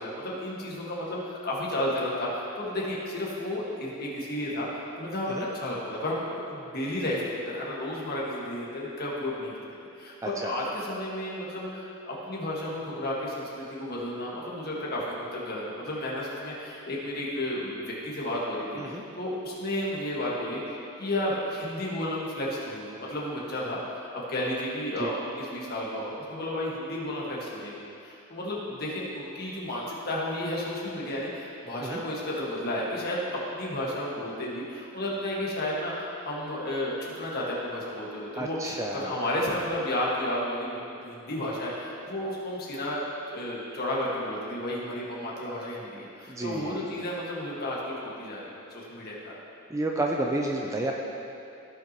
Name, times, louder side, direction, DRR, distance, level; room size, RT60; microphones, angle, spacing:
voice 1, 0.0-4.7 5.0-9.5 10.0-18.8 19.2-20.6 21.0-27.7 28.0-33.2 33.5-38.6 38.9-43.0 43.3-48.4 48.7-49.4, left 1 dB, 45° left, -5 dB, 1.7 m, -32 dB
voice 2, 38.4-39.2 46.3-46.8 49.7-50.9, right 2 dB, 15° right, 0 dB, 0.4 m, -30 dB
15.5 x 5.9 x 3.0 m, 2.7 s
head